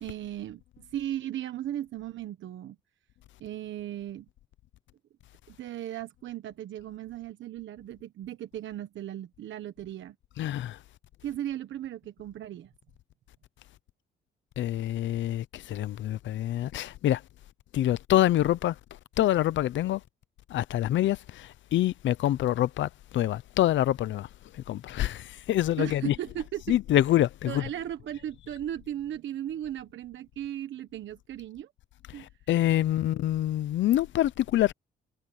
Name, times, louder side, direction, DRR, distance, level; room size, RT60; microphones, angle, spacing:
voice 1, 0.0-2.8 3.4-4.3 5.5-10.2 11.2-12.7 25.8-26.7 27.5-31.7 32.1-32.3, right 11 dB, 70° right, 1.3 m, -36 dB
voice 2, 10.4-10.8 14.6-17.2 17.7-18.7 19.2-20.0 20.5-24.3 24.7-26.1 26.7-27.6 32.2-34.7, left 13 dB, 70° left, 0.7 m, -26 dB
cardioid pair, 90°, 20 cm